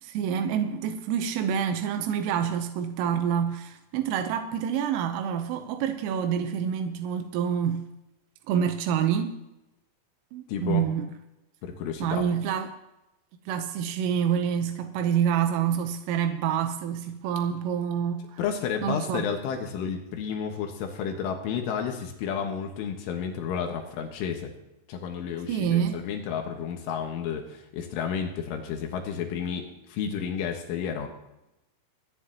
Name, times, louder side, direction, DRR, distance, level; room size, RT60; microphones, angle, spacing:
voice 1, 0.0-7.8 8.5-9.4 10.3-11.1 12.0-12.7 13.5-18.4 18.8-19.3 25.5-26.0, right 8 dB, 90° right, 3.5 m, -27 dB
voice 2, 10.5-10.8 11.6-12.3 18.4-24.5 24.9-31.1, left 7 dB, 80° left, 3.8 m, -31 dB
28.5 x 10.0 x 3.0 m
omnidirectional pair, 5.7 m